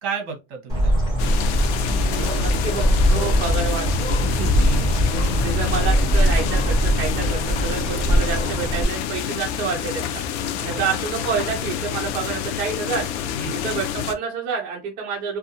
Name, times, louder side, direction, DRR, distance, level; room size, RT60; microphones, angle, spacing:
voice 1, 0.0-1.2 4.6-5.0 10.6-10.9 13.4-13.6, right 6 dB, 50° right, 1.0 m, -32 dB
Bird, 0.7-8.8, equal, 10° right, 1.2 m, -21 dB
sound 1, 1.2-14.1, left 9 dB, 70° left, 0.5 m, -28 dB
voice 2, 1.9-2.8 3.1-3.9 4.2-4.6 5.4-10.2 10.6-13.1 13.5-15.4, right 6 dB, 30° right, 0.5 m, -28 dB
2.6 x 2.3 x 2.7 m
supercardioid pair, 170°, 36 cm